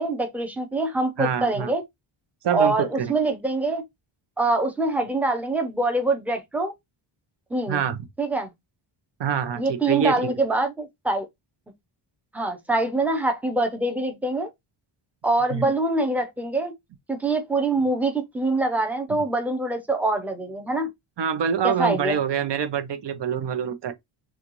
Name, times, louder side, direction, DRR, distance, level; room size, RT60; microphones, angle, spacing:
voice 1, 0.0-1.8 2.5-3.8 4.4-6.7 7.5-7.8 8.2-8.5 9.6-11.3 12.3-14.5 15.2-16.7 17.1-20.9 21.6-22.2, right 2 dB, 5° right, 0.6 m, -24 dB
voice 2, 1.2-1.7 2.4-3.1 7.7-8.0 9.2-10.3 15.5-15.7 21.2-23.9, right 8 dB, 55° right, 0.8 m, -25 dB
6.3 x 2.4 x 3.0 m
wide cardioid pair, 175°, 50 cm